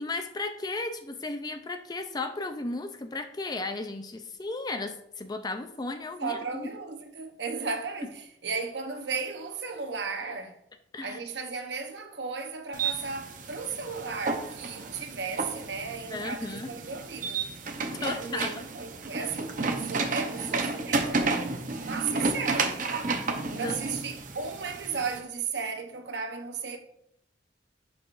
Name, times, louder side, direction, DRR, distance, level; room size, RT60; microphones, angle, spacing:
voice 1, 0.0-6.7 10.9-11.2 16.1-16.7 18.0-18.5 23.5-23.8, left 2 dB, 20° left, 0.4 m, -34 dB
voice 2, 6.2-10.6 11.0-17.4 18.0-21.6 21.8-22.8 23.5-26.8, right 5 dB, 75° right, 0.9 m, -35 dB
sound 1, 12.7-25.2, right 3 dB, 45° right, 0.7 m, -32 dB
11.0 x 4.8 x 2.5 m
head